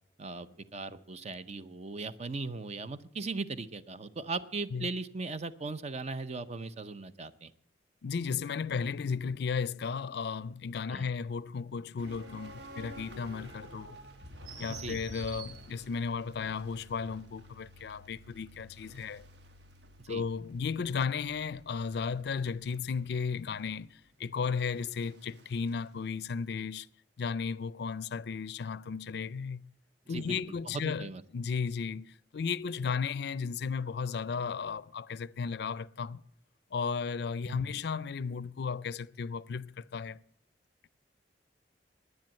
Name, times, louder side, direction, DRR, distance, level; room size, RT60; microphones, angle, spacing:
voice 1, 0.2-7.5 10.9-11.1 14.7-15.0 20.1-20.2 30.1-31.2 37.5-37.8, right 3 dB, 40° right, 0.6 m, -38 dB
voice 2, 8.0-14.0 14.6-19.2 20.1-26.9 27.2-29.7 30.1-31.1 31.3-36.2 36.7-40.2, left 5 dB, 65° left, 0.4 m, -34 dB
sound 1, 12.0-25.8, right 1 dB, 75° right, 1.3 m, -50 dB
10.5 x 9.6 x 8.9 m
head